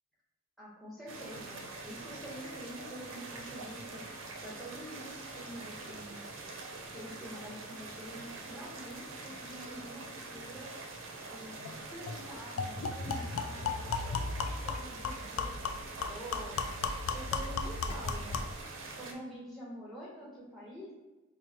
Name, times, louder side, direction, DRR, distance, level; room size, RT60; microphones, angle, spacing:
voice 1, 0.6-4.0 4.4-6.2 6.9-10.7 11.3-16.6 17.1-18.4 19.0-20.9, equal, ahead, -6 dB, 0.9 m, -47 dB
sound 1, 1.1-19.1, right 3 dB, 65° right, 0.5 m, -45 dB
sound 2, 11.6-11.7 12.1-12.2 12.6-18.6, left 4 dB, 80° left, 0.3 m, -35 dB
4.5 x 2.1 x 2.9 m, 1.1 s
head